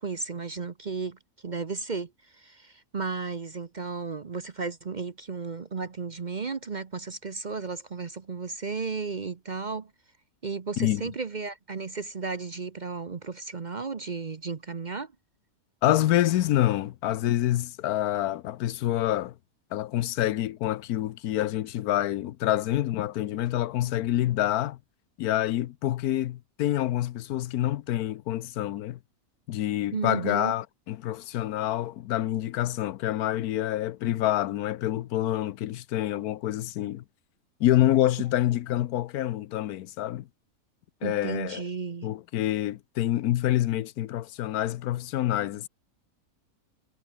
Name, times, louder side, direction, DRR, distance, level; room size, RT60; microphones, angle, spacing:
voice 1, 0.0-9.9 10.4-15.1 29.9-30.5 41.0-42.1, right 4 dB, 35° right, 0.9 m, -34 dB
voice 2, 15.8-19.4 19.7-24.8 25.2-29.0 29.5-37.0 37.6-40.3 41.0-41.6 42.0-45.7, left 13 dB, 80° left, 1.2 m, -27 dB
omnidirectional pair, 1.6 m